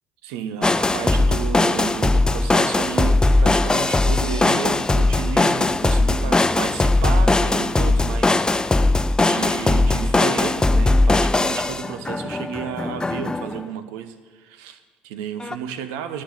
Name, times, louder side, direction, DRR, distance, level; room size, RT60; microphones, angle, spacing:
voice 1, 0.2-16.2, right 8 dB, 70° right, 11 dB, 0.9 m, -32 dB
sound 1, 0.6-13.6 15.4-15.6, left 2 dB, 15° left, 0.5 m, -19 dB
11.5 x 8.8 x 6.4 m, 1.5 s
hypercardioid pair, 60°, 5 cm